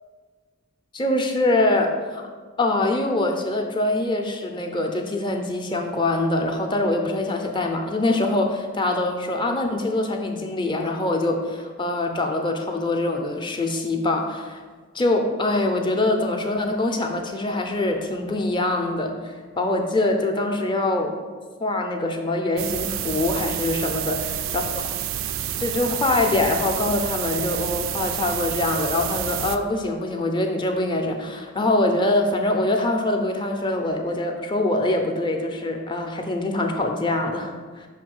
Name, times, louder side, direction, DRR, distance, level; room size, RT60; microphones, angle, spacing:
voice 1, 0.9-2.2 2.6-14.6 14.9-21.1 21.6-24.6 25.6-37.9, left 2 dB, 25° left, 3 dB, 0.5 m, -24 dB
sound 1, 22.6-29.6, right 10 dB, 75° right, 0.3 m, -29 dB
5.7 x 3.1 x 5.3 m, 1.5 s
head